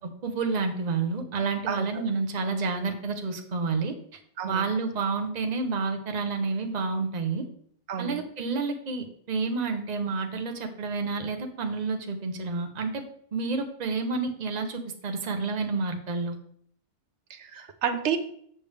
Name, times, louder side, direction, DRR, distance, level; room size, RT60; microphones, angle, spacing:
voice 1, 0.2-3.9 4.4-7.4 8.0-13.0 13.3-16.4, right 4 dB, 35° right, 4 dB, 1.0 m, -29 dB
voice 2, 1.7-2.0 4.4-4.7 7.9-8.2 17.3-18.2, right 8 dB, 65° right, 9 dB, 1.1 m, -30 dB
7.2 x 6.9 x 3.4 m, 0.62 s
omnidirectional pair, 1.3 m